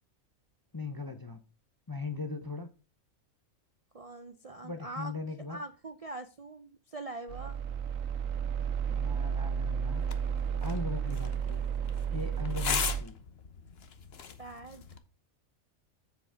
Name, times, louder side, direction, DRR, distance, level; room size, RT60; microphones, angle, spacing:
voice 1, 0.7-1.4 1.9-2.7 4.6-5.6 8.9-10.0 10.6-11.6 12.1-13.2, left 4 dB, 25° left, 0.5 m, -39 dB
voice 2, 3.9-5.1 5.5-7.6 14.4-14.8, right 2 dB, 45° right, 0.5 m, -42 dB
sound 1, 7.3-13.0, right 7 dB, 80° right, 1.2 m, -32 dB
sound 2, 10.0-15.0, left 6 dB, 55° left, 1.1 m, -39 dB
7.7 x 7.3 x 3.4 m
omnidirectional pair, 1.4 m